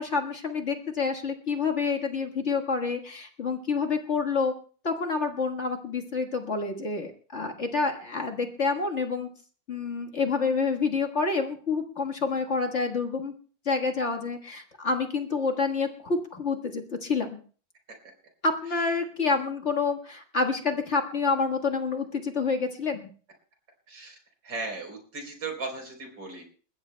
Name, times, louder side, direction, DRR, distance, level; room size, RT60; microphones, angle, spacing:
voice 1, 0.0-4.5 4.8-9.3 9.7-13.3 13.6-17.4 18.4-23.1, left 4 dB, 40° left, 3 dB, 1.7 m, -28 dB
voice 2, 23.9-24.2 24.4-26.4, right 3 dB, 85° right, 2 dB, 4.5 m, -36 dB
29.0 x 15.0 x 2.2 m, 0.42 s
omnidirectional pair, 2.0 m